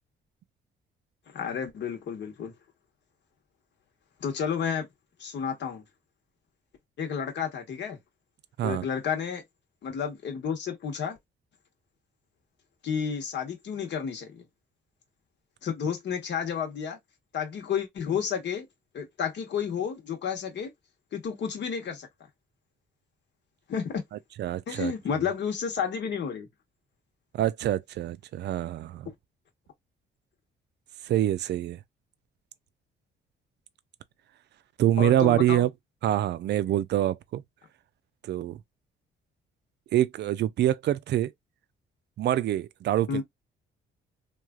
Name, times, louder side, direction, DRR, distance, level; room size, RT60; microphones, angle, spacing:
voice 1, 1.3-2.5 4.2-4.9 5.2-5.8 7.0-8.0 8.6-9.4 9.8-11.2 12.8-14.4 15.6-17.0 17.3-18.7 18.9-20.7 21.1-22.1 23.7-24.0 24.7-26.5 35.0-35.6 43.1-43.2, left 7 dB, 60° left, 1.1 m, -31 dB
voice 2, 24.4-24.9 27.3-29.1 31.0-31.8 34.8-35.7 36.0-37.4 38.2-38.6 39.9-41.3 42.2-43.2, right 12 dB, 60° right, 0.4 m, -25 dB
3.1 x 2.4 x 2.3 m
cardioid pair, 90°, 20 cm